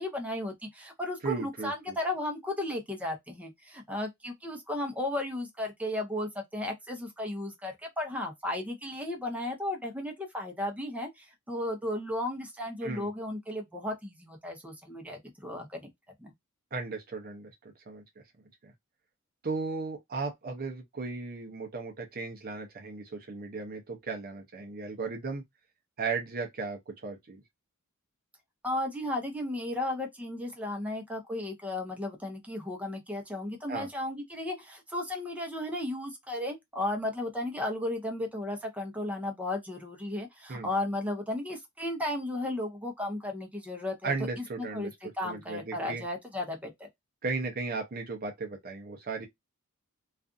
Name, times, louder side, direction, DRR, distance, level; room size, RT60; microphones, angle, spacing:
voice 1, 0.0-15.9 16.2-16.3 28.6-46.9, left 1 dB, 5° right, 0.7 m, -34 dB
voice 2, 1.2-2.0 12.8-13.1 16.7-17.5 17.9-18.0 18.6-18.7 19.4-25.4 26.0-27.4 33.7-33.9 40.5-40.7 44.0-44.9 45.2-46.0 47.2-49.3, right 4 dB, 45° right, 0.6 m, -36 dB
2.5 x 2.4 x 2.4 m
head